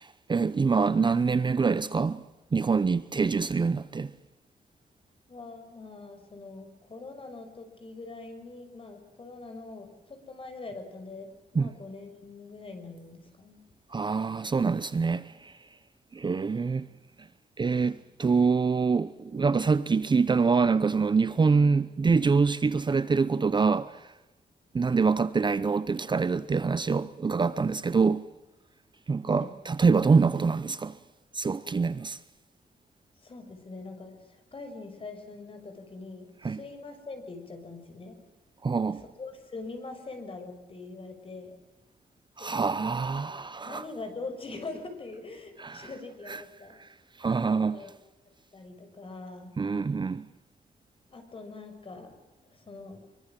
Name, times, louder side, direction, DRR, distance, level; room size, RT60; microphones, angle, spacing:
voice 1, 0.0-2.2 2.5-4.1 11.5-11.7 13.9-15.5 16.1-16.9 17.6-24.1 24.7-28.3 29.1-31.0 31.3-32.2 36.4-36.6 38.6-39.0 42.4-43.8 45.6-46.0 46.2-46.5 46.8-46.9 47.2-47.9 49.6-50.3, right 4 dB, 30° right, 0.8 m, -25 dB
voice 2, 5.3-11.3 11.5-13.6 29.2-29.5 33.2-38.2 38.9-41.6 42.4-43.1 43.6-46.8 47.5-47.9 48.5-49.5 51.1-52.2 52.5-53.0, left 3 dB, 35° left, 6.3 m, -43 dB
25.0 x 24.0 x 7.6 m
wide cardioid pair, 140°, 16 cm